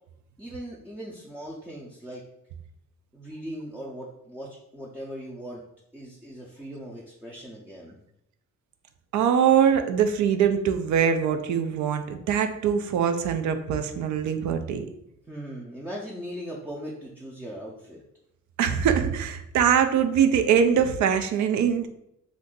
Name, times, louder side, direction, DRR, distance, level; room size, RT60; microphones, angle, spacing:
voice 1, 0.4-2.2 3.1-5.6 5.9-8.0 15.3-18.0, equal, 5° right, -4 dB, 0.4 m, -39 dB
voice 2, 9.1-14.8 18.6-21.9, right 8 dB, 70° right, 8 dB, 0.4 m, -23 dB
2.6 x 2.5 x 3.6 m, 0.78 s
cardioid pair, 90°, 30 cm